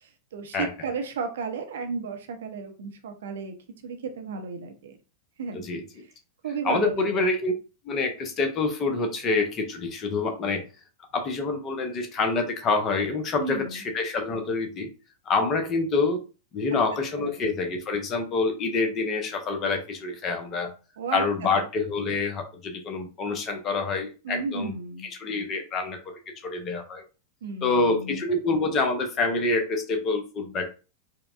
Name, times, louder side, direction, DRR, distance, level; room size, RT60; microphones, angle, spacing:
voice 1, 0.0-3.6 3.8-4.9 5.4-5.7 6.4-7.3 13.4-13.8 16.7-16.8 17.2-17.4 21.0-21.6 24.2-25.1 27.4-28.2, right 4 dB, 60° right, 5 dB, 0.6 m, -34 dB
voice 2, 5.5-5.8 6.6-7.5 7.8-10.6 11.1-14.9 15.3-16.2 16.5-20.7 21.1-24.7 25.2-26.1 26.4-27.0 27.6-30.7, left 3 dB, 30° left, 5 dB, 0.7 m, -26 dB
4.4 x 2.1 x 2.4 m, 0.32 s
figure-of-eight pair, 90°, 0 cm